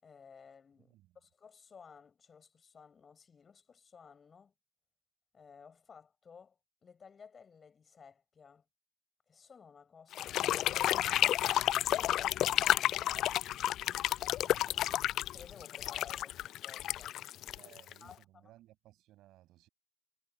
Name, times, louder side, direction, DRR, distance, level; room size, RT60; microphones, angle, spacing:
voice 1, 0.0-4.5 5.3-8.7 9.3-11.4 11.7-13.0 15.3-17.2 18.0-18.5, left 6 dB, 45° left, 7.7 m, -57 dB
voice 2, 0.9-1.2 14.4-15.1 17.5-19.7, right 15 dB, 70° right, 7.4 m, -61 dB
sound 1, 10.1-18.1, left 13 dB, 65° left, 0.4 m, -31 dB
hypercardioid pair, 40°, 0 cm